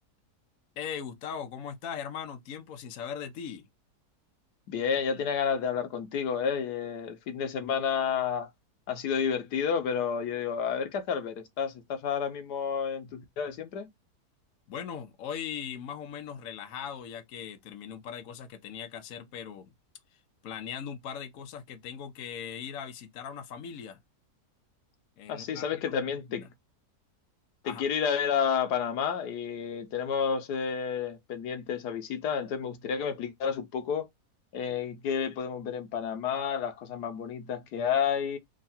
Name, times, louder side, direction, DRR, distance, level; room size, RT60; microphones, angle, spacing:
voice 1, 0.8-3.7 14.7-19.7 20.1-24.0 25.2-26.5 27.6-27.9, left 8 dB, 60° left, 1.1 m, -39 dB
voice 2, 4.7-8.5 8.9-13.9 25.3-26.5 27.6-34.1 34.5-38.4, left 7 dB, 80° left, 1.3 m, -30 dB
3.7 x 2.3 x 4.1 m
omnidirectional pair, 1.7 m